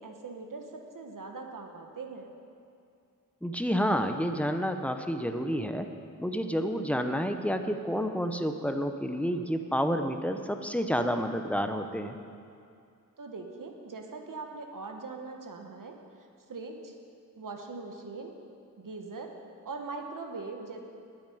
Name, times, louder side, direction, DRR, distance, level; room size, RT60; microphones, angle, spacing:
voice 1, 0.0-2.3 13.2-16.0 16.5-16.9 17.4-18.3 18.8-19.4 19.6-20.8, right 3 dB, 70° right, 3 dB, 1.4 m, -41 dB
voice 2, 3.4-5.9 6.2-12.2, equal, 5° left, 6 dB, 0.7 m, -29 dB
9.5 x 8.6 x 9.9 m, 2.4 s
wide cardioid pair, 125°, 34 cm